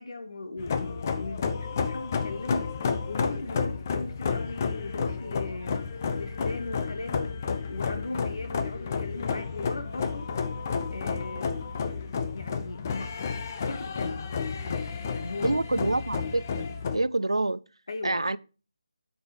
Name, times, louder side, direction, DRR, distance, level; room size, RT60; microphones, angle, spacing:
voice 1, 0.0-2.7 3.1-5.8 6.1-7.3 7.7-10.3 10.9-11.6 12.3-13.3 13.6-14.3 14.6-15.9 17.9-18.3, left 2 dB, 60° left, 1.3 m, -38 dB
sound 1, 0.6-17.0, left 5 dB, 30° left, 0.7 m, -31 dB
voice 2, 15.4-16.6 16.9-17.6 18.0-18.4, right 2 dB, 90° right, 0.4 m, -27 dB
7.8 x 5.1 x 5.2 m
figure-of-eight pair, 160°, 3 cm